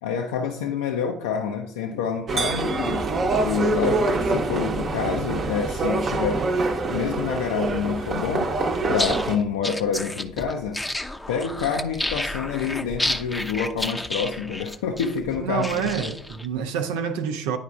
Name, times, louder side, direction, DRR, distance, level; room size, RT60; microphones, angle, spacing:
voice 1, 0.0-3.1 3.4-6.5 6.9-8.5 8.9-10.8 11.3-15.9, left 6 dB, 70° left, 0.4 m, -27 dB
sound 1, 2.3-9.4, right 3 dB, 45° right, 0.8 m, -25 dB
sound 2, 8.9-16.5, left 1 dB, 10° left, 0.6 m, -31 dB
voice 2, 15.4-17.6, right 7 dB, 70° right, 0.5 m, -27 dB
10.0 x 4.8 x 2.3 m
figure-of-eight pair, 50°, 0 cm